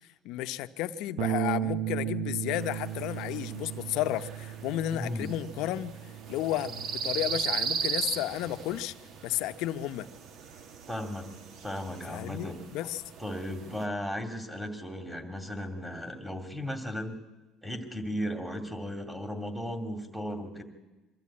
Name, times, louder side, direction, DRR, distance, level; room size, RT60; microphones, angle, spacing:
voice 1, 0.2-5.9 6.3-8.9 9.2-10.1 12.1-13.0, left 13 dB, 75° left, 11 dB, 0.8 m, -32 dB
Bass guitar, 1.2-7.4, right 11 dB, 80° right, 1.1 m, -35 dB
sound 1, 2.5-13.8, right 5 dB, 55° right, 1.4 m, -38 dB
voice 2, 4.9-5.3 10.9-11.2 11.6-12.6 13.2-17.2 17.6-20.6, equal, 5° right, 4 dB, 2.5 m, -36 dB
24.0 x 13.0 x 8.6 m, 1.1 s
cardioid pair, 140°, 0 cm